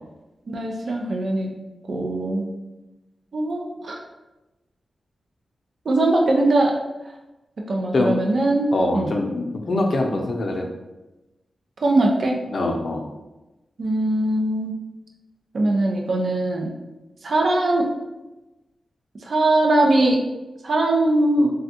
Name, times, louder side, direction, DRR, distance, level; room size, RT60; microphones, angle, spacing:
voice 1, 0.5-1.5 1.9-2.5 3.3-4.0 5.9-6.8 7.7-9.1 11.8-12.4 13.8-14.7 15.5-16.7 17.2-17.9 19.2-20.2 20.6-21.5, right 2 dB, 65° right, 1 dB, 0.5 m, -21 dB
voice 2, 8.7-10.7 12.5-13.0, left 2 dB, 60° left, 1 dB, 0.5 m, -23 dB
3.4 x 2.3 x 2.8 m, 1.0 s
cardioid pair, 50°, 0 cm